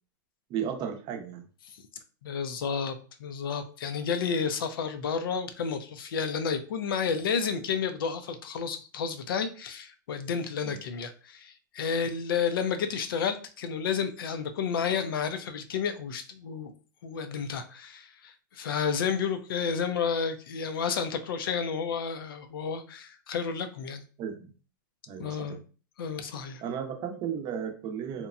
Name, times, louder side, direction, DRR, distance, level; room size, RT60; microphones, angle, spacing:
voice 1, 0.5-1.4 10.6-10.8 24.2-24.5 25.1-25.6 26.6-28.3, right 8 dB, 40° right, 5 dB, 0.6 m, -34 dB
voice 2, 2.2-16.7 17.0-24.0 25.2-25.6 26.0-26.6, left 6 dB, 85° left, 8 dB, 0.4 m, -31 dB
2.9 x 2.1 x 2.4 m, 0.38 s
hypercardioid pair, 125°, 11 cm